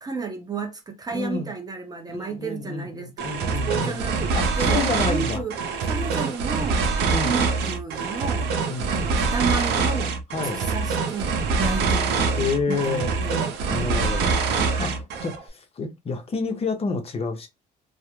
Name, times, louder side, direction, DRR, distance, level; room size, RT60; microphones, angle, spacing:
voice 1, 0.0-3.3 3.7-5.6 5.8-6.8 7.2-8.5 8.9-10.1 10.5-13.9 14.7-15.0, right 4 dB, 20° right, 0.5 m, -32 dB
voice 2, 1.1-1.5 2.1-4.0 4.3-5.4 7.1-7.4 8.7-8.9 10.3-10.7 12.4-13.2 13.7-14.4 14.8-17.5, left 4 dB, 35° left, 0.6 m, -29 dB
sound 1, 3.2-15.4, right 4 dB, 80° right, 0.5 m, -24 dB
2.3 x 2.0 x 2.9 m
cardioid pair, 110°, 17 cm